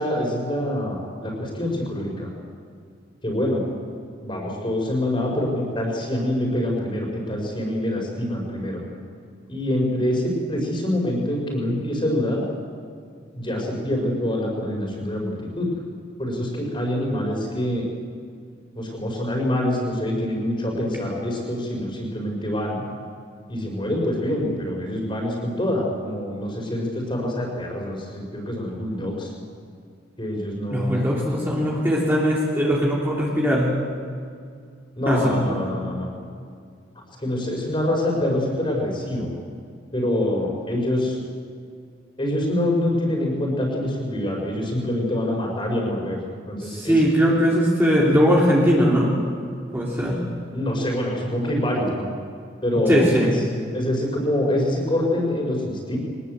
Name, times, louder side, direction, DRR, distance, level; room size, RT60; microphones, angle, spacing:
voice 1, 0.0-2.3 3.2-3.6 4.2-8.8 9.5-12.4 13.4-15.7 16.2-17.9 18.8-22.8 23.5-29.3 30.2-31.1 35.0-36.1 37.2-39.3 39.9-41.2 42.2-46.2 46.5-47.0 50.5-52.1 52.6-53.3 53.7-56.0, left 1 dB, 25° left, -1 dB, 5.3 m, -25 dB
voice 2, 30.7-33.7 35.1-35.4 46.6-49.1 49.7-50.2 52.9-53.3, equal, 10° right, -4 dB, 3.2 m, -20 dB
23.5 x 19.5 x 8.0 m, 2.2 s
head